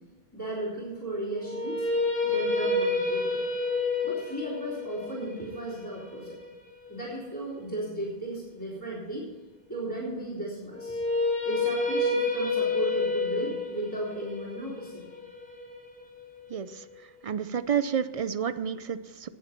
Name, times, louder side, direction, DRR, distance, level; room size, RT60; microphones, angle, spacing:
voice 1, 0.3-1.9 2.2-3.4 4.0-6.4 6.9-9.2 9.7-11.0 11.4-15.1, right 1 dB, 20° left, -9 dB, 3.8 m, -35 dB
sound 1, 1.4-7.5 10.7-16.8, left 3 dB, 55° left, 2.8 m, -29 dB
voice 2, 16.5-16.8 17.2-19.3, right 7 dB, 50° right, 13 dB, 0.4 m, -30 dB
19.0 x 7.4 x 4.5 m, 1.3 s
omnidirectional pair, 1.0 m